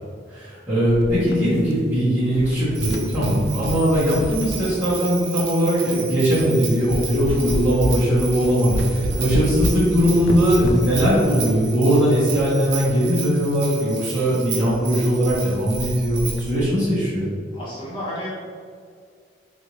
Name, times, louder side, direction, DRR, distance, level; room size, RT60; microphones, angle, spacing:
voice 1, 0.3-17.3, equal, 5° right, -14 dB, 1.0 m, -20 dB
sound 1, 0.9-2.0 2.3-5.3 5.9-6.0 6.4-6.6 6.9-13.0 13.2-13.3 13.6-13.7 14.1-14.3 14.7-14.8 15.1-15.4 15.7-16.7, left 1 dB, 60° left, 0.3 m, -29 dB
Bell, 2.7-16.6, right 7 dB, 70° right, 0.5 m, -34 dB
voice 2, 17.5-18.3, equal, 25° left, -8 dB, 1.1 m, -33 dB
3.7 x 2.6 x 3.0 m, 2.1 s
head